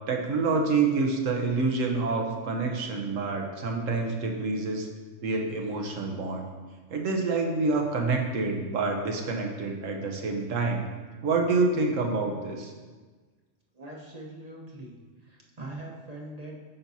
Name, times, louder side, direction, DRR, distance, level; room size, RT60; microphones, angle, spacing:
voice 1, 0.1-4.9 5.2-6.4 6.9-10.8 11.2-12.7, right 3 dB, 80° right, 2 dB, 1.3 m, -27 dB
voice 2, 13.7-14.9 15.2-16.6, right 2 dB, 35° right, -3 dB, 0.9 m, -42 dB
9.3 x 5.9 x 2.7 m, 1.4 s
omnidirectional pair, 1.3 m